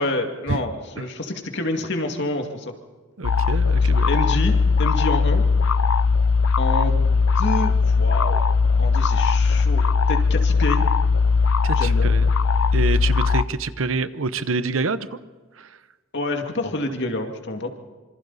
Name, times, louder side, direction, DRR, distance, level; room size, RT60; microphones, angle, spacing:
voice 1, 0.0-2.7 3.8-5.5 6.6-8.4 8.8-10.9 11.7-12.1 16.1-17.7, left 2 dB, 60° left, 4 dB, 2.3 m, -28 dB
sound 1, 3.2-13.4, left 4 dB, 75° left, 0.5 m, -19 dB
voice 2, 3.2-4.1 11.6-12.3 12.7-15.2 15.6-15.8, right 4 dB, 75° right, 13 dB, 0.9 m, -27 dB
26.5 x 26.0 x 4.1 m, 1.4 s
head